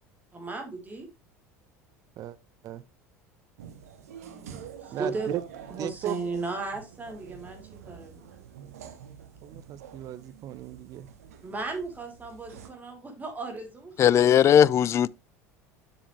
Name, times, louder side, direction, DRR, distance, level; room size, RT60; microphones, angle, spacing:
voice 1, 0.3-1.1 4.2-5.3 5.7-8.2 11.4-14.5, right 3 dB, 20° right, 3.0 m, -36 dB
sound 1, 3.6-12.7, right 9 dB, 75° right, 1.0 m, -47 dB
voice 2, 4.9-5.4 5.8-6.2 9.4-11.1, right 12 dB, 45° right, 0.7 m, -36 dB
voice 3, 14.0-15.1, left 9 dB, 35° left, 0.3 m, -18 dB
7.9 x 6.3 x 3.1 m
figure-of-eight pair, 70°, 8 cm